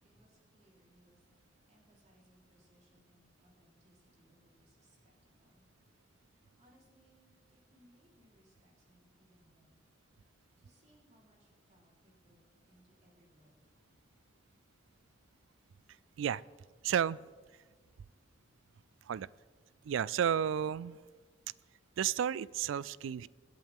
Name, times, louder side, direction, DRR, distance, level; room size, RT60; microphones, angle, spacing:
voice 1, 0.0-5.7 6.2-9.8 10.6-12.4 12.7-13.7, right 1 dB, 35° right, -3 dB, 3.8 m, -68 dB
voice 2, 16.8-17.2 19.1-19.3 19.8-21.0 22.0-23.3, right 8 dB, 85° right, 21 dB, 0.3 m, -32 dB
23.0 x 8.8 x 3.7 m, 1.4 s
head